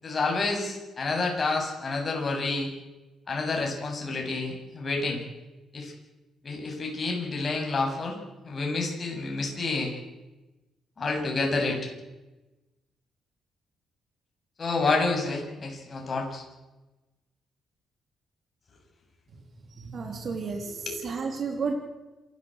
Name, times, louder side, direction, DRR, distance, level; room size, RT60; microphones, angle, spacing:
voice 1, 0.0-2.7 3.3-5.2 5.7-5.9 6.4-8.2 8.4-9.9 11.0-11.9 14.6-16.4 20.6-21.1, left 3 dB, 35° left, 1 dB, 7.8 m, -29 dB
voice 2, 19.7-21.7, right 5 dB, 50° right, 4 dB, 3.3 m, -32 dB
27.5 x 13.5 x 8.0 m, 1.1 s
cardioid pair, 90°, 0 cm